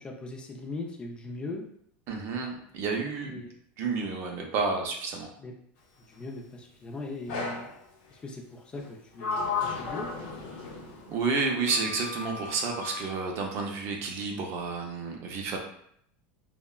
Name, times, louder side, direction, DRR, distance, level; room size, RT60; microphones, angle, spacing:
voice 1, 0.0-1.7 3.2-3.5 5.4-5.5 6.1-7.8 8.1-10.4, left 2 dB, 15° left, 1 dB, 0.4 m, -40 dB
voice 2, 2.1-3.4 3.8-5.3 11.1-15.6, right 4 dB, 45° right, 2 dB, 0.5 m, -30 dB
Sliding door, 7.3-7.8 8.8-11.2 11.7-13.1, left 4 dB, 75° left, 0.7 m, -34 dB
3.4 x 2.1 x 2.2 m, 0.68 s
supercardioid pair, 145°, 6 cm